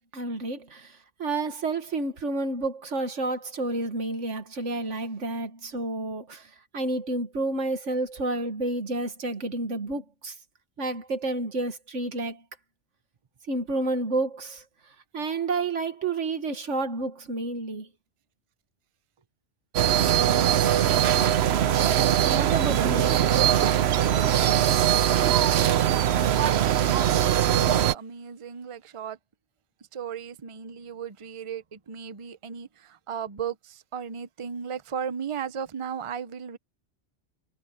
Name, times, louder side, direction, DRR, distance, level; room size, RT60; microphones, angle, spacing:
voice 1, 0.1-10.4 10.8-12.4 13.5-14.6 15.1-17.9 20.9-21.2 22.3-23.2, right 2 dB, 85° right, 2.0 m, -30 dB
sound 1, 19.7-27.9, right 10 dB, 65° right, 0.9 m, -21 dB
voice 2, 25.9-29.2 29.9-36.6, right 7 dB, 30° right, 0.7 m, -36 dB
omnidirectional pair, 1.2 m